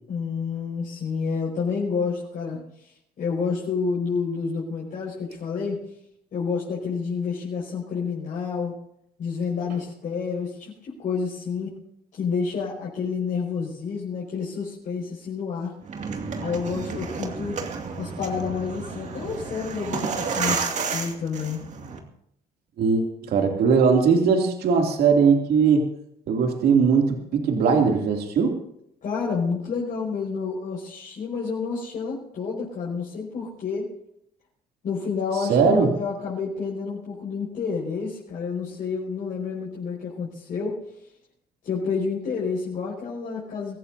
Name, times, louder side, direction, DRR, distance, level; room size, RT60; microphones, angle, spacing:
voice 1, 0.1-2.9 3.2-5.8 6.3-8.7 9.2-11.7 12.1-15.8 16.4-17.6 18.0-21.6 29.0-33.9 34.8-40.8 41.6-43.8, left 5 dB, 50° left, -5 dB, 5.4 m, -29 dB
sound 1, 15.8-22.0, right 5 dB, 45° right, 2.4 m, -31 dB
voice 2, 22.8-25.9 26.3-28.6 35.5-35.9, right 5 dB, 65° right, 2 dB, 2.9 m, -20 dB
24.5 x 14.5 x 2.8 m, 0.74 s
cardioid pair, 110°, 17 cm